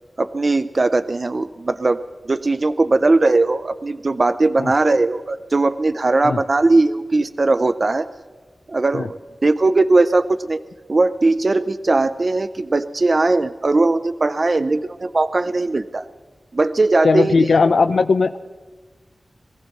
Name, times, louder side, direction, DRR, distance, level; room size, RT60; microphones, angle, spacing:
voice 1, 0.2-8.1 8.7-10.6 10.9-16.1 16.5-17.3, right 2 dB, 50° right, 11 dB, 0.5 m, -19 dB
voice 2, 17.0-18.4, left 4 dB, 85° left, 9 dB, 0.4 m, -17 dB
22.0 x 15.5 x 4.1 m, 1.4 s
wide cardioid pair, 65°, 0 cm